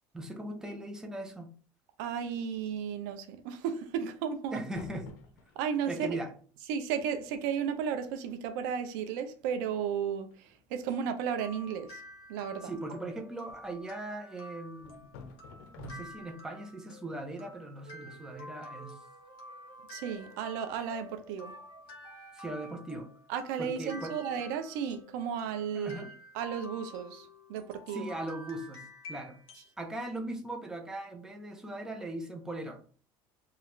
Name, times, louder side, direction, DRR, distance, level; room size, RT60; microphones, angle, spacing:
voice 1, 0.1-1.5 4.5-5.2 5.9-6.4 12.6-15.2 15.8-19.0 22.3-23.1 23.6-24.2 25.7-26.1 27.9-29.4 29.8-32.8, right 1 dB, 5° right, 0.6 m, -39 dB
voice 2, 2.0-4.6 5.6-6.2 6.7-10.3 10.7-12.0 12.3-12.7 19.9-21.5 23.3-26.1 26.3-28.1, right 7 dB, 85° right, 0.5 m, -34 dB
sound 1, 4.6-5.8 6.7-6.8 7.0-7.3 7.7-7.9 8.4-8.5 8.9-9.2 10.3-10.9 12.9-13.8 14.8-16.4, left 4 dB, 85° left, 0.6 m, -52 dB
sound 2, 10.9-29.8, left 1 dB, 65° left, 1.3 m, -50 dB
sound 3, 17.8-22.9, right 5 dB, 65° right, 1.3 m, -54 dB
3.2 x 2.3 x 3.0 m
supercardioid pair, 120°, 10 cm